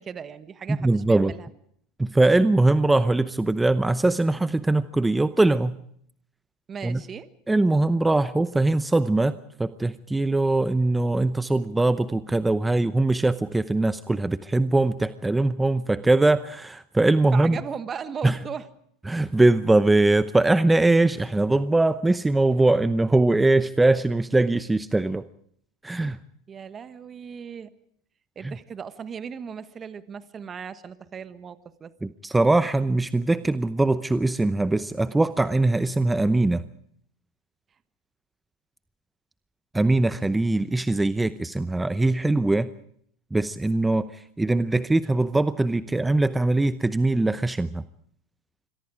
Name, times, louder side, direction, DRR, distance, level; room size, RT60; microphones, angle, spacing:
voice 1, 0.0-1.5 6.7-7.3 17.3-18.7 26.5-27.7 28.3-31.9, right 7 dB, 30° right, 12 dB, 1.4 m, -37 dB
voice 2, 0.8-1.3 2.0-5.8 6.8-7.0 7.5-17.6 18.2-18.4 19.1-25.2 25.8-26.2 28.4-28.6 32.0-36.6 39.7-42.7 43.3-47.8, right 2 dB, 10° right, 13 dB, 0.8 m, -21 dB
26.5 x 23.0 x 5.0 m, 0.66 s
hypercardioid pair, 95°, 0 cm